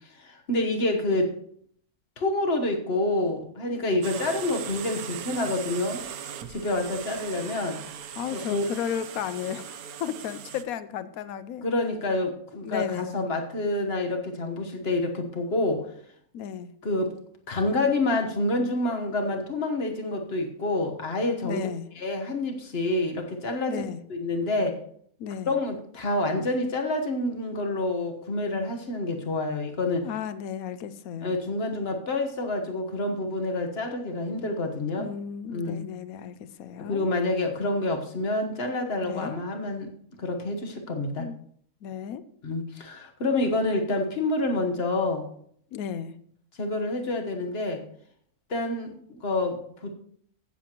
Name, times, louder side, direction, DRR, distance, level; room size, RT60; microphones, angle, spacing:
voice 1, 0.2-1.3 2.2-6.0 6.5-7.8 8.3-8.7 11.6-15.9 16.8-17.1 17.5-21.7 22.0-23.8 24.1-24.8 25.5-30.1 31.2-35.1 35.5-35.9 36.9-39.9 40.2-41.3 42.4-45.3 46.6-47.8 48.5-49.9, left 2 dB, 45° left, 4 dB, 1.4 m, -28 dB
sound 1, 4.0-10.6, right 9 dB, 75° right, 1.2 m, -39 dB
voice 2, 8.2-11.6 12.6-13.2 16.3-16.7 21.4-21.9 23.7-24.0 25.2-25.5 30.0-31.3 35.0-37.0 39.0-39.4 41.2-41.4 41.8-42.2 45.7-46.2, left 8 dB, 80° left, 13 dB, 1.1 m, -34 dB
15.5 x 7.7 x 3.0 m, 0.64 s
omnidirectional pair, 1.6 m